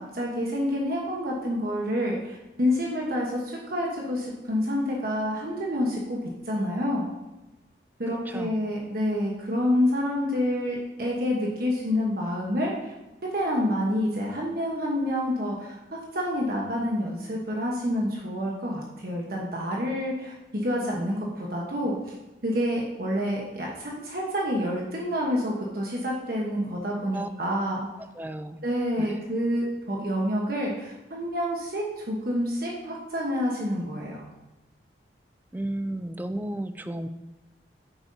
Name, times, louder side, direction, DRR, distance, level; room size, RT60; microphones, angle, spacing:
voice 1, 0.0-7.1 8.0-12.9 13.3-22.1 22.4-27.9 28.6-34.2, equal, 55° right, -2 dB, 1.2 m, -28 dB
voice 2, 28.1-28.6 29.0-29.2 35.5-37.1, right 1 dB, 10° right, 10 dB, 0.3 m, -33 dB
9.1 x 7.0 x 2.8 m, 1.0 s
head